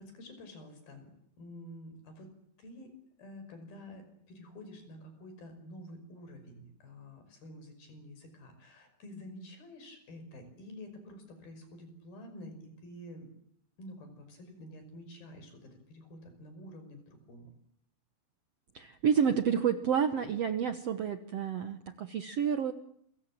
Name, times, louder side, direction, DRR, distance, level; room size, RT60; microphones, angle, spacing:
voice 1, 0.0-2.3 2.6-13.3 13.8-17.5, left 1 dB, 75° left, 7 dB, 7.4 m, -49 dB
voice 2, 18.7-22.7, right 7 dB, 65° right, 9 dB, 1.6 m, -29 dB
29.0 x 24.5 x 7.5 m, 0.69 s
omnidirectional pair, 4.3 m